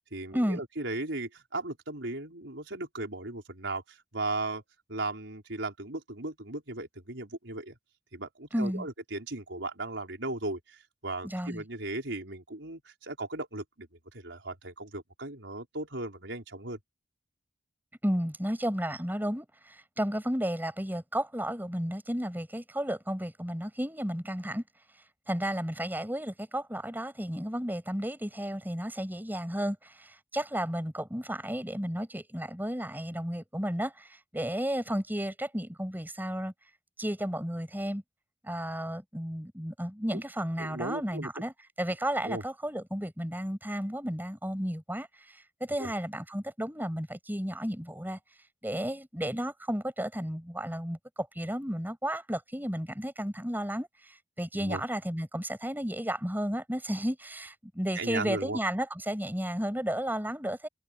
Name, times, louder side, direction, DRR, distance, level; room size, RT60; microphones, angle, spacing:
voice 1, 0.1-4.6 4.9-7.8 8.1-16.8 40.1-40.2 40.6-41.3 42.2-42.4 45.8-45.9 54.5-54.8 57.9-58.6, right 2 dB, 80° right, 5.0 m, -37 dB
voice 2, 8.5-8.9 11.2-11.6 18.0-24.6 25.3-36.5 37.0-38.0 38.4-48.2 48.6-60.7, equal, 10° right, 6.2 m, -33 dB
open air
head